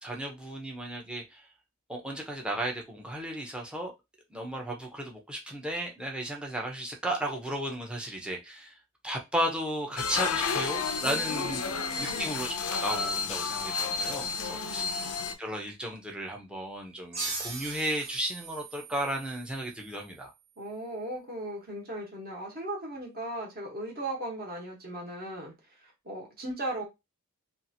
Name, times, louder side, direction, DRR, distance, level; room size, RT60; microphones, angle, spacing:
voice 1, 0.0-1.4 1.9-3.9 4.3-8.8 9.0-11.7 12.0-14.8 15.4-20.3, right 1 dB, 5° right, 0 dB, 0.6 m, -34 dB
sound 1, 10.0-15.3, left 5 dB, 75° left, 0.4 m, -31 dB
voice 2, 11.0-12.4 14.1-15.0 20.6-26.8, right 1 dB, 40° right, -1 dB, 1.1 m, -38 dB
sound 2, 17.1-20.4, right 3 dB, 65° right, 1.4 m, -40 dB
2.7 x 2.4 x 2.7 m, 0.23 s
head